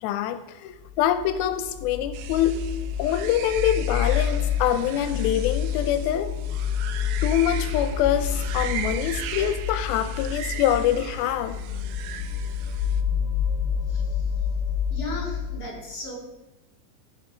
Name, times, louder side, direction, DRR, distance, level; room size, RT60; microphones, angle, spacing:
voice 1, 0.0-2.6 3.0-6.3 7.2-11.6, left 10 dB, 90° left, 11 dB, 2.4 m, -25 dB
sound 1, 0.8-15.6, left 7 dB, 50° left, 1.2 m, -29 dB
sound 2, 2.1-13.0, right 10 dB, 85° right, 1.7 m, -38 dB
voice 2, 14.9-16.2, left 2 dB, 25° left, -2 dB, 3.4 m, -35 dB
14.5 x 6.6 x 5.5 m, 1.1 s
omnidirectional pair, 4.2 m